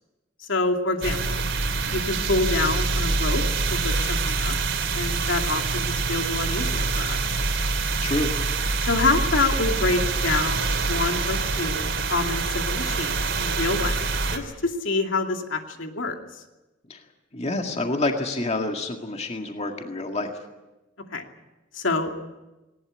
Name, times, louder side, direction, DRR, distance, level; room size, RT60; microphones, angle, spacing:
voice 1, 0.5-1.4 1.9-3.4 3.7-4.5 4.9-7.2 8.8-16.1 21.1-21.2 21.7-22.2, left 3 dB, 75° left, 4 dB, 2.5 m, -27 dB
sound 1, 1.0-14.4, right 3 dB, 70° right, 3.1 m, -25 dB
voice 2, 8.0-8.3 16.9-17.0 17.3-20.3, left 2 dB, 35° left, 3 dB, 1.9 m, -27 dB
19.5 x 19.0 x 9.9 m, 1.1 s
head